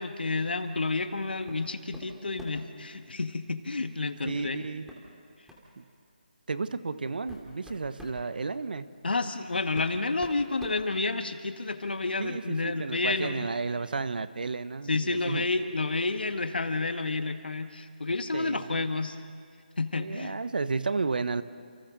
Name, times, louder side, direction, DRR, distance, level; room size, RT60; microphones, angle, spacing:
voice 1, 0.0-4.6 9.0-13.5 14.9-19.2 19.8-20.4, left 3 dB, 75° left, 8 dB, 1.7 m, -30 dB
sound 1, 1.5-1.7 1.9-2.7 4.3-4.4 4.9-5.0 5.5-5.7 6.5-6.6 7.1-8.2 9.3-9.4 9.7-11.5, equal, 5° right, 2.6 m, -46 dB
voice 2, 4.2-4.9 5.8-5.9 6.5-8.9 12.2-15.5 18.3-18.8 20.0-21.4, right 4 dB, 65° right, 14 dB, 1.0 m, -32 dB
30.0 x 28.5 x 4.1 m, 2.2 s
figure-of-eight pair, 160°, 5 cm